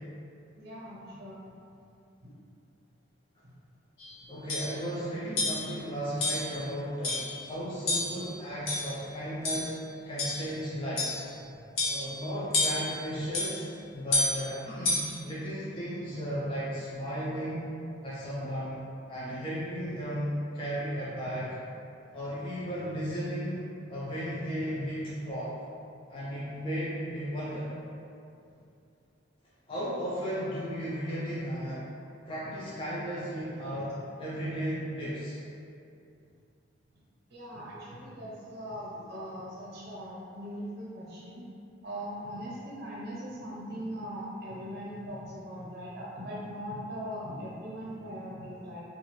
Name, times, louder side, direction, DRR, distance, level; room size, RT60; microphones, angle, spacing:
voice 1, 0.6-1.5 2.2-2.3 3.4-3.5 11.4-11.5 21.2-21.5 33.9-34.0 37.3-41.5 41.8-48.8, equal, 55° right, -6 dB, 0.7 m, -40 dB
sound 1, 4.0-4.1 4.5-4.7 5.4-5.7 6.2-6.5 7.0-7.3 7.9-8.2 8.7-9.0 9.4-9.7 10.2-10.5 11.0-11.2 11.8-12.1 12.5-12.9 13.3-13.5 14.1-14.4 14.8-15.2, left 2 dB, 90° left, 0.7 m, -29 dB
voice 2, 4.3-7.2 7.5-9.7 10.1-11.2 11.8-13.6 13.9-17.6 18.0-18.8 19.1-21.6 22.1-25.6 26.1-27.7 29.7-31.8 32.3-33.9 34.2-35.4, equal, 25° left, -9 dB, 0.4 m, -35 dB
2.5 x 2.3 x 3.0 m, 2.6 s
head